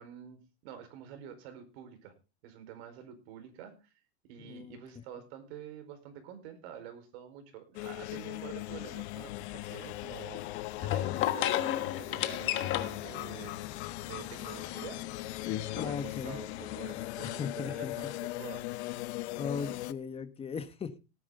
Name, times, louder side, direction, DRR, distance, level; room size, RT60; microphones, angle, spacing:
voice 1, 0.0-2.1 2.4-3.9 4.2-13.6 14.0-15.0 15.3-15.4 15.7-18.6, right 9 dB, 70° right, 9 dB, 4.7 m, -48 dB
voice 2, 4.5-4.8 15.8-16.4 17.2-17.9 19.4-21.0, left 6 dB, 15° left, 12 dB, 1.2 m, -37 dB
sound 1, 7.7-19.9, left 18 dB, 75° left, 0.9 m, -40 dB
sound 2, 8.7-17.3, left 12 dB, 35° left, 1.5 m, -36 dB
18.0 x 9.6 x 3.8 m, 0.30 s
supercardioid pair, 150°, 33 cm